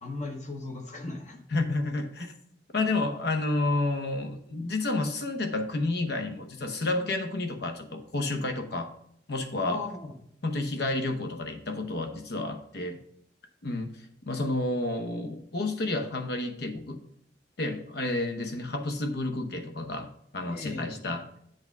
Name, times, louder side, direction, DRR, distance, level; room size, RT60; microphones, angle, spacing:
voice 1, 0.0-1.4 9.6-10.1 20.5-21.1, left 2 dB, 45° left, 3 dB, 1.0 m, -37 dB
voice 2, 1.5-2.3 2.7-8.9 9.3-9.8 10.4-13.0 13.6-14.0 14.3-17.0 17.6-21.2, left 2 dB, 65° left, 6 dB, 0.9 m, -30 dB
7.9 x 3.5 x 5.1 m, 0.69 s
head